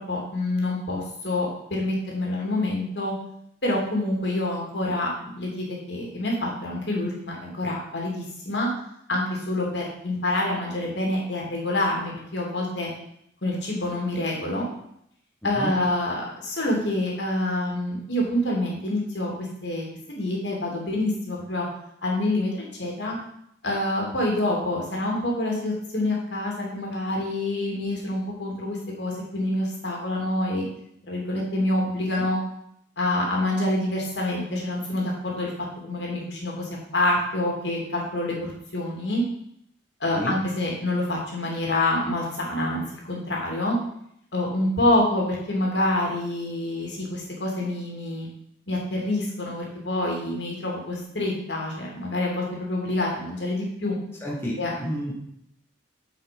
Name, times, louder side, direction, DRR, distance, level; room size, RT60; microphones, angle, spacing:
voice 1, 0.1-3.1 3.6-8.7 9.1-12.9 13.4-14.7 15.4-19.3 19.6-21.7 22.0-22.5 22.8-23.2 23.6-30.6 31.1-32.4 33.0-35.5 35.8-39.2 40.0-43.8 44.3-48.3 48.7-54.0 54.6-54.7, left 1 dB, 65° left, -2 dB, 2.7 m, -27 dB
voice 2, 15.4-15.7 40.1-40.3 54.2-55.1, equal, 15° left, -4 dB, 1.7 m, -30 dB
8.6 x 5.6 x 5.3 m, 0.73 s
head